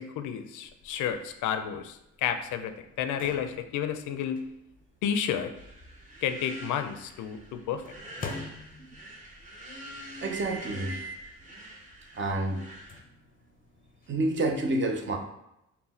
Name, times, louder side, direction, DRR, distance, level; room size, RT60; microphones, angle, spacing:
voice 1, 0.0-4.5 5.0-5.5 6.2-7.8, left 8 dB, 80° left, 8 dB, 0.5 m, -31 dB
sound 1, 0.6-6.8 7.8-9.2 10.3-11.3 11.8-12.0 12.9-14.5, left 2 dB, 30° left, 0.5 m, -45 dB
sound 2, 5.6-13.0, equal, 25° right, 1.0 m, -45 dB
voice 2, 10.2-11.0 12.1-12.7 14.1-15.2, right 2 dB, 40° right, 4 dB, 0.6 m, -28 dB
4.0 x 2.2 x 4.1 m, 0.85 s
cardioid pair, 90°, 30 cm